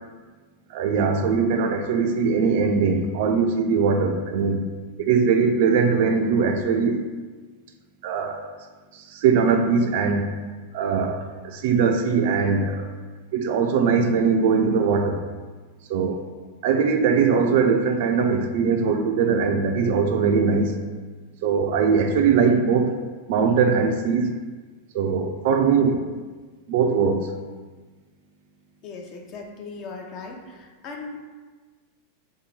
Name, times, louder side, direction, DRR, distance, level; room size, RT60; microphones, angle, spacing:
voice 1, 0.7-4.6 5.0-7.0 8.0-8.5 8.9-10.4 10.7-12.9 13.3-15.3 15.9-16.2 16.6-20.8 21.4-23.0 23.3-24.3 24.9-26.0 26.7-27.3, right 5 dB, 50° right, 5 dB, 0.4 m, -21 dB
voice 2, 28.8-31.2, left 4 dB, 35° left, 1 dB, 0.6 m, -38 dB
3.3 x 2.8 x 4.1 m, 1.4 s
figure-of-eight pair, 90°, 0 cm